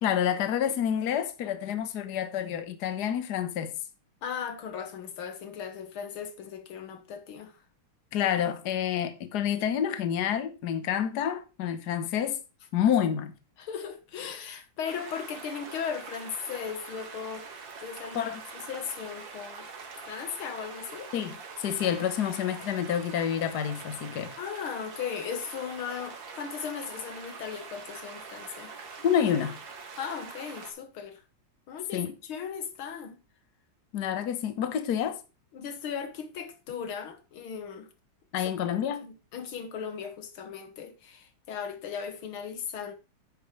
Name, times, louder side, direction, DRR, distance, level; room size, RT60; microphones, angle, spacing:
voice 1, 0.0-3.7 8.1-12.4 12.7-13.3 18.1-18.4 21.1-24.3 29.0-29.6 31.9-32.1 33.9-35.2 38.3-39.1, left 9 dB, 55° left, 1.5 m, -28 dB
voice 2, 4.2-7.6 13.6-17.5 17.8-19.7 20.1-21.1 24.4-28.7 30.0-31.2 31.7-33.2 35.5-37.9 38.4-38.6 39.0-42.9, left 7 dB, 90° left, 2.2 m, -37 dB
sound 1, 14.8-30.7, right 5 dB, 65° right, 2.4 m, -44 dB
9.9 x 8.9 x 3.2 m
omnidirectional pair, 2.2 m